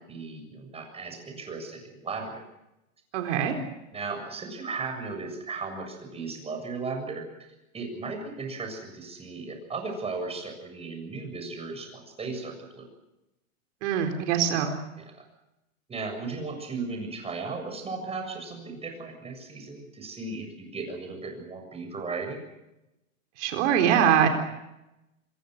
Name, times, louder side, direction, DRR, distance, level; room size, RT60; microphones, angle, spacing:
voice 1, 0.0-2.4 3.9-7.2 7.7-12.9 15.0-15.2 15.9-22.4, right 4 dB, 15° right, 4 dB, 7.4 m, -36 dB
voice 2, 3.1-3.5 13.8-14.8 23.4-24.3, right 9 dB, 55° right, 5 dB, 4.1 m, -23 dB
26.5 x 23.0 x 6.5 m, 0.93 s
hypercardioid pair, 140°, 42 cm